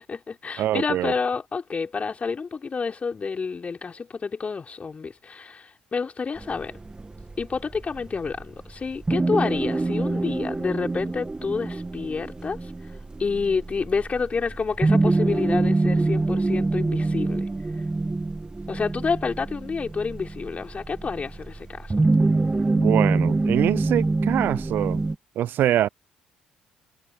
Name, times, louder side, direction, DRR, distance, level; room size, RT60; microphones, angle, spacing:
voice 1, 0.0-6.8 7.4-12.9 13.2-17.5 18.7-22.0, left 5 dB, 35° left, 4.1 m, -29 dB
voice 2, 0.6-1.1 22.7-25.0 25.4-25.9, right 12 dB, 60° right, 0.5 m, -24 dB
sound 1, 6.4-25.2, right 3 dB, 20° right, 1.7 m, -25 dB
hypercardioid pair, 50°, 4 cm